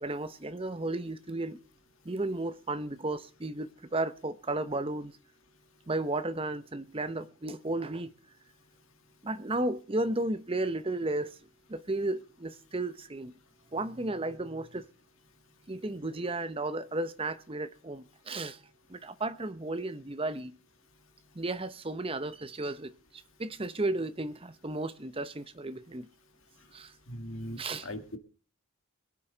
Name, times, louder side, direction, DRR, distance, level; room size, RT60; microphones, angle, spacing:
voice 1, 0.0-1.6 2.0-5.1 5.9-8.1 9.2-11.4 11.7-13.3 13.7-14.9 15.7-18.6 18.9-20.6 21.3-26.1 26.7-26.9 27.6-27.9, right 2 dB, 25° right, 0.7 m, -34 dB
voice 2, 27.1-28.2, left 1 dB, 65° left, 1.9 m, -40 dB
22.0 x 9.2 x 3.9 m
head